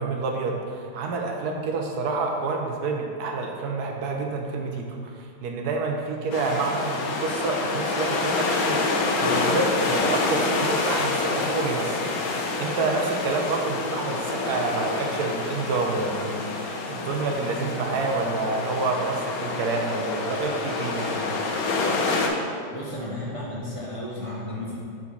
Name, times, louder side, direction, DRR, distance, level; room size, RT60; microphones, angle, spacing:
voice 1, 0.0-12.1 12.6-21.4, right 3 dB, 65° right, 1 dB, 1.1 m, -28 dB
sound 1, 6.3-22.3, left 3 dB, 65° left, 1.0 m, -27 dB
voice 2, 22.7-24.8, left 1 dB, 50° right, -7 dB, 0.4 m, -33 dB
4.9 x 4.0 x 5.2 m, 2.2 s
omnidirectional pair, 2.0 m